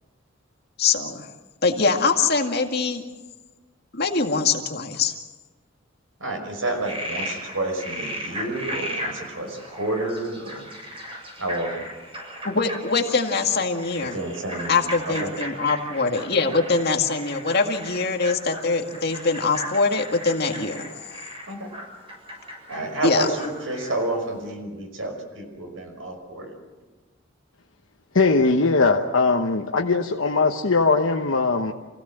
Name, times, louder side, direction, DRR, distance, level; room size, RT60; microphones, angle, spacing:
voice 1, 0.8-1.3 1.6-3.0 3.9-5.1 12.4-14.2 14.7-20.8 23.0-23.3, left 4 dB, 55° left, 4 dB, 2.0 m, -23 dB
voice 2, 6.2-10.7 11.4-11.7 14.0-14.8 15.0-15.3 21.5-21.7 22.7-26.5, right 2 dB, 85° right, 4 dB, 5.7 m, -30 dB
Frog, 6.6-24.1, equal, 30° right, 7.5 m, -36 dB
voice 3, 28.1-31.7, left 3 dB, 90° left, 2 dB, 1.1 m, -20 dB
28.0 x 16.5 x 7.7 m, 1.2 s
head